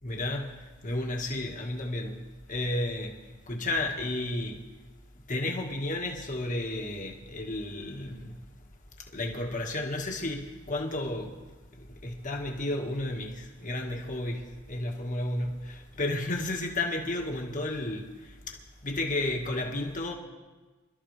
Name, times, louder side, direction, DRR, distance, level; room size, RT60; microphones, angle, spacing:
voice 1, 0.0-2.2 2.5-4.7 5.3-8.4 9.0-11.4 11.7-20.1, left 2 dB, 40° left, 1.7 m, -32 dB
26.0 x 13.0 x 3.3 m
head